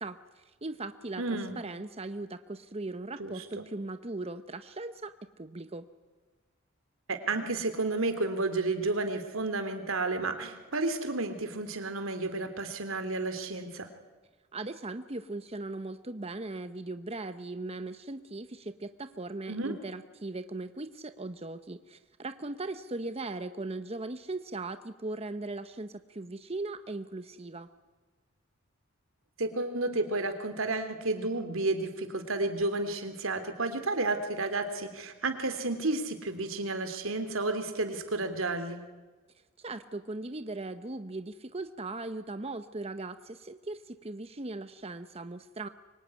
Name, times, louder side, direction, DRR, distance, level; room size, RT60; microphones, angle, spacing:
voice 1, 0.0-5.9 14.5-27.7 39.6-45.7, right 2 dB, 30° right, 10 dB, 0.9 m, -39 dB
voice 2, 1.2-1.6 3.2-3.6 7.1-13.9 19.5-19.7 29.4-38.8, right 2 dB, 90° right, 8 dB, 3.1 m, -31 dB
24.5 x 24.0 x 9.7 m, 1.3 s
head